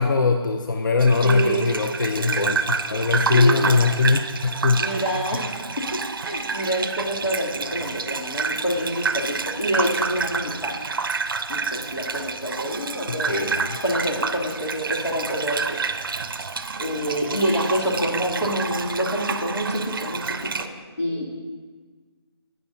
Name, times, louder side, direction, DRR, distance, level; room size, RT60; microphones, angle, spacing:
voice 1, 0.0-4.9 13.1-13.8, left 4 dB, 45° left, 5 dB, 0.4 m, -21 dB
Gurgling / Bathtub (filling or washing), 1.0-20.7, right 5 dB, 55° right, 0.5 m, -29 dB
voice 2, 1.2-1.8 2.2-2.5 3.3-3.9 4.8-5.8 6.2-10.8 11.5-20.7 21.0-21.3, equal, 85° left, -4 dB, 2.7 m, -27 dB
11.5 x 9.4 x 2.7 m, 1.4 s
figure-of-eight pair, 160°, 14 cm